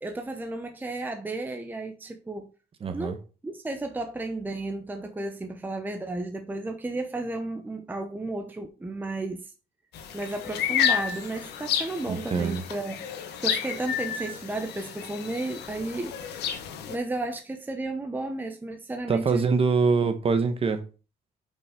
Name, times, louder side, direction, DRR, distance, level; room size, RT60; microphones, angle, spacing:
voice 1, 0.0-2.5 2.9-9.5 10.1-13.0 13.4-16.2 16.9-19.4, right 2 dB, 10° right, 0.8 m, -33 dB
voice 2, 2.8-3.2 12.1-12.6 19.1-20.8, right 5 dB, 35° right, 1.1 m, -24 dB
sound 1, 9.9-17.0, left 9 dB, 75° left, 1.3 m, -31 dB
5.4 x 5.2 x 5.1 m
cardioid pair, 110°, 17 cm